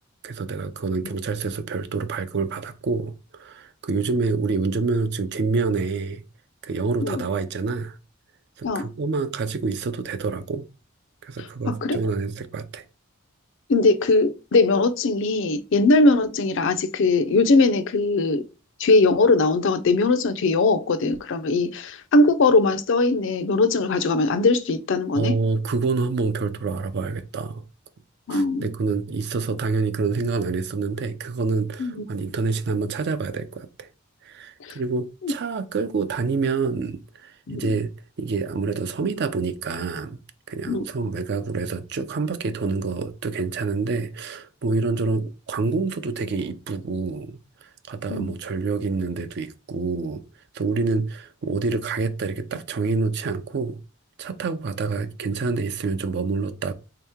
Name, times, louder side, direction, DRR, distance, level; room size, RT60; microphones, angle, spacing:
voice 1, 0.2-6.2 6.6-8.0 8.6-10.7 11.2-12.8 25.1-27.6 28.3-33.9 34.2-37.9 38.2-40.2 40.5-50.2 50.5-53.8 54.2-56.7, right 4 dB, 55° right, 0.4 m, -27 dB
voice 2, 11.4-12.0 13.7-18.4 18.8-25.3 28.3-28.7 31.8-32.1 34.6-34.8 35.2-35.3 37.5-37.6 40.7-40.8 48.1-48.3, left 3 dB, 65° left, 0.5 m, -20 dB
3.5 x 2.9 x 3.5 m
head